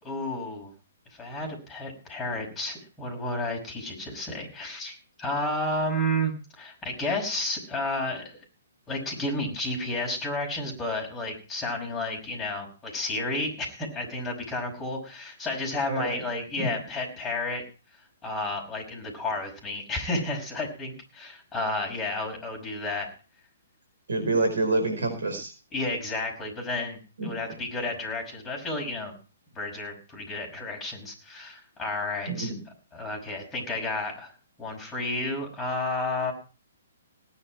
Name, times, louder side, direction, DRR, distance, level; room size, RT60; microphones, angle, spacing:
voice 1, 0.0-0.7 1.2-8.2 8.9-17.6 18.2-23.1 25.7-29.1 29.5-32.5 32.9-34.3 34.6-36.3, left 2 dB, 10° left, -1 dB, 5.7 m, -31 dB
voice 2, 15.9-16.2 16.6-16.7 24.1-25.5 27.2-27.3 32.3-32.6, right 2 dB, 60° right, 4 dB, 4.7 m, -27 dB
18.0 x 10.0 x 4.7 m, 0.35 s
figure-of-eight pair, 125°, 0 cm